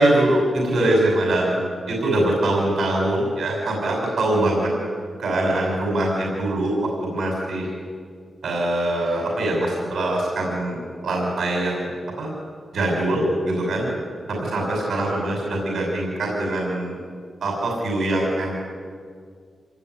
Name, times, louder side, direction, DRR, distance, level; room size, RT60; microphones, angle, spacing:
voice 1, 0.0-4.7 5.2-7.7 8.4-10.8 11.0-12.3 12.7-13.9 14.3-17.0 17.4-18.5, right 1 dB, 70° right, 0 dB, 6.2 m, -23 dB
27.5 x 18.0 x 9.7 m, 2.1 s
wide cardioid pair, 160°, 0 cm